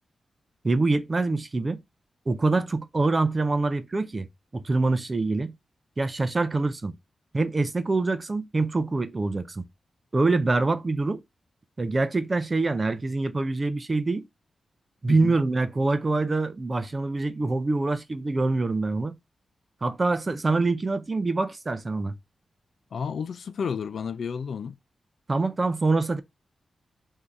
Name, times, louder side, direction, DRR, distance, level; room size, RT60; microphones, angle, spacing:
voice 1, 0.6-1.8 2.3-4.3 4.5-5.5 6.0-6.9 7.3-9.6 10.1-11.2 11.8-14.2 15.0-19.2 19.8-22.2 25.3-26.2, right 3 dB, 25° right, 0.5 m, -25 dB
voice 2, 22.9-24.8, left 6 dB, 65° left, 0.3 m, -31 dB
3.7 x 2.7 x 4.4 m
wide cardioid pair, 140°, 0 cm